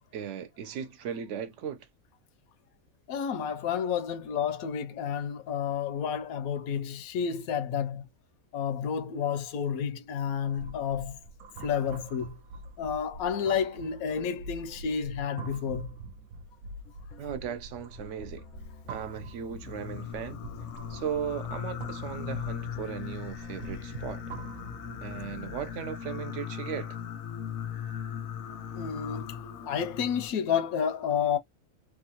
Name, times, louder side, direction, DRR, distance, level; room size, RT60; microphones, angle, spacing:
voice 1, 0.1-1.9 17.2-18.4 18.9-20.4 20.9-24.2 25.0-27.0, right 8 dB, 65° right, 0.9 m, -37 dB
voice 2, 3.1-8.0 8.5-11.2 11.6-12.3 12.8-15.9 28.8-29.3 29.6-31.4, left 7 dB, 85° left, 1.1 m, -30 dB
sound 1, 10.4-25.1, right 2 dB, 90° right, 1.0 m, -45 dB
sound 2, 16.8-25.7, left 3 dB, 10° left, 0.5 m, -49 dB
Singing, 19.6-30.3, left 8 dB, 65° left, 0.7 m, -38 dB
3.0 x 2.3 x 2.8 m
omnidirectional pair, 1.4 m